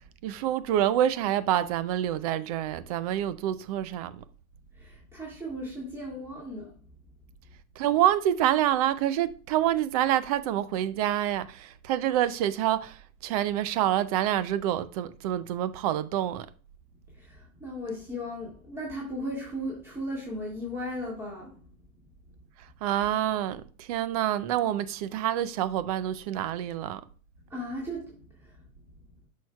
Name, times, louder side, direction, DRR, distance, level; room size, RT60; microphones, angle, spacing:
voice 1, 0.2-4.2 7.8-13.0 13.2-16.5 22.8-27.0, right 12 dB, 30° right, 0.4 m, -27 dB
voice 2, 4.8-6.7 17.2-21.5 27.5-28.5, equal, 5° right, 2.0 m, -36 dB
10.5 x 6.4 x 2.3 m
hypercardioid pair, 140°, 42 cm